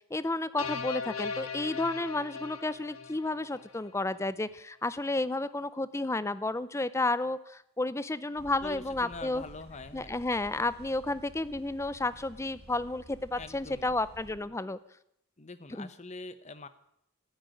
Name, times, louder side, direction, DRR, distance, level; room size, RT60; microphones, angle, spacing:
voice 1, 0.1-9.4 9.9-14.8 15.8-15.9, left 2 dB, 15° left, 15 dB, 0.5 m, -32 dB
sound 1, 0.6-3.9, left 5 dB, 80° left, 1.3 m, -38 dB
sound 2, 8.4-14.4, right 1 dB, 50° right, 1.8 m, -53 dB
voice 2, 8.6-10.2 13.4-13.9 15.4-16.7, left 3 dB, 35° left, 12 dB, 1.0 m, -44 dB
13.5 x 10.5 x 9.1 m, 0.77 s
head